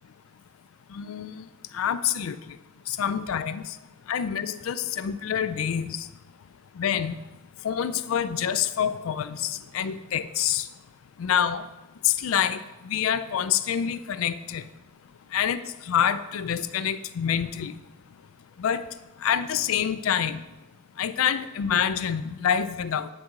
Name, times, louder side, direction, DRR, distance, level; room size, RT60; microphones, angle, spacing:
voice 1, 0.9-1.4 1.7-2.4 2.9-3.7 4.1-6.0 6.8-7.2 7.6-10.7 11.2-11.7 12.0-12.6 12.8-14.6 15.3-17.7 18.6-18.9 19.2-20.4 21.0-23.1, left 8 dB, 75° left, 14 dB, 0.4 m, -26 dB
9.6 x 3.7 x 4.6 m, 1.0 s
head